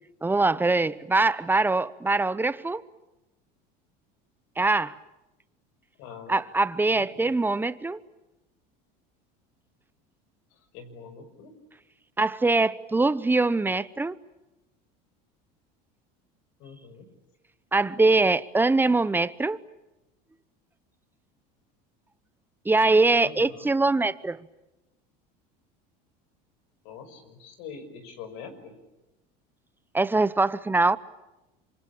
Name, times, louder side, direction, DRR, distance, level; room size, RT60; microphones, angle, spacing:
voice 1, 0.2-2.8 4.6-4.9 6.3-8.0 12.2-14.2 17.7-19.6 22.6-24.4 29.9-31.0, right 3 dB, 10° right, 0.9 m, -23 dB
voice 2, 6.0-6.3 6.9-7.3 10.7-11.5 16.6-17.1 23.2-23.7 26.8-28.7, left 6 dB, 70° left, 5.9 m, -44 dB
27.5 x 24.5 x 8.8 m
supercardioid pair, 115°, 21 cm